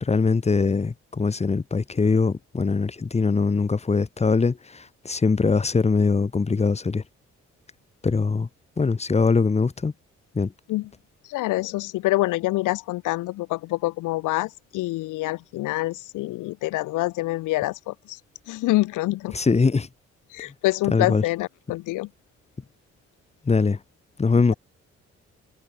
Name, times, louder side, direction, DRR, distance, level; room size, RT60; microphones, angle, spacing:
voice 1, 0.0-7.0 8.0-8.5 8.8-9.9 10.3-10.5 19.3-19.9 20.9-21.2 23.4-23.8 24.2-24.5, left 4 dB, 20° left, 0.8 m, -22 dB
voice 2, 11.2-18.2 18.5-19.4 20.3-22.1, left 19 dB, 75° left, 0.6 m, -26 dB
hypercardioid pair, 50°, 32 cm